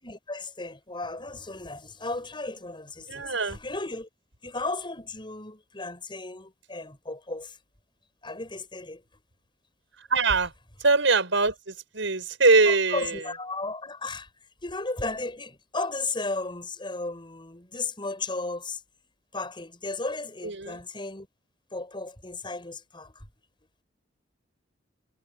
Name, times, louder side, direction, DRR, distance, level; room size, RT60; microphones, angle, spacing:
voice 1, 0.0-4.1 4.4-7.6 8.2-9.0 10.3-10.4 12.6-14.3 14.6-18.8 19.3-21.3 21.7-23.3, left 3 dB, 25° left, 6.5 m, -35 dB
voice 2, 3.1-3.6 10.1-10.5 10.8-13.2 20.4-20.8, right 3 dB, 85° right, 5.7 m, -23 dB
head